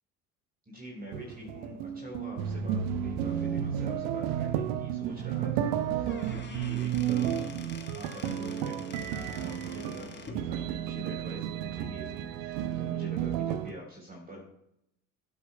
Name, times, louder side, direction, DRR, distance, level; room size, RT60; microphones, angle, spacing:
voice 1, 0.7-7.4 7.9-14.5, equal, 20° right, -1 dB, 3.6 m, -45 dB
sound 1, 1.1-13.7, right 9 dB, 60° right, 0.9 m, -32 dB
Squeak / Wood, 5.9-10.5, left 4 dB, 25° left, 1.6 m, -47 dB
21.0 x 8.6 x 2.2 m, 0.79 s
figure-of-eight pair, 70°, 45 cm